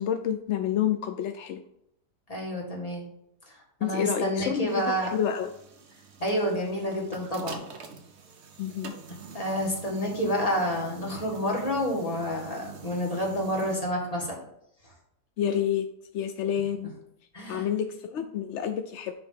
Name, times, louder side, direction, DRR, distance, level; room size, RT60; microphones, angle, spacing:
voice 1, 0.0-1.6 3.8-5.5 8.6-9.0 15.4-15.9 16.1-16.9 17.5-19.1, left 9 dB, 75° left, 7 dB, 0.6 m, -29 dB
voice 2, 2.3-3.1 3.5-5.1 6.2-7.6 9.3-14.3 17.3-17.7, equal, 20° left, -2 dB, 1.8 m, -29 dB
sound 1, 4.7-13.8, right 5 dB, 50° right, 1.0 m, -46 dB
9.5 x 3.2 x 5.7 m, 0.75 s
omnidirectional pair, 1.8 m